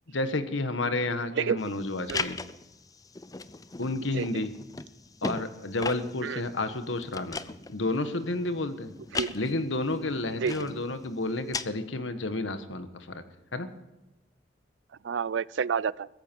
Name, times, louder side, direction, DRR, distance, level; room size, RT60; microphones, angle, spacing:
voice 1, 0.1-2.4 3.8-4.5 5.2-7.4 7.7-8.9 9.3-13.2 13.5-13.7, left 2 dB, 85° left, 9 dB, 1.4 m, -31 dB
sound 1, 1.6-11.6, left 4 dB, 20° left, 0.5 m, -39 dB
voice 2, 10.4-10.7 15.0-16.1, right 6 dB, 75° right, 22 dB, 0.4 m, -29 dB
16.5 x 14.5 x 4.6 m, 1.1 s
head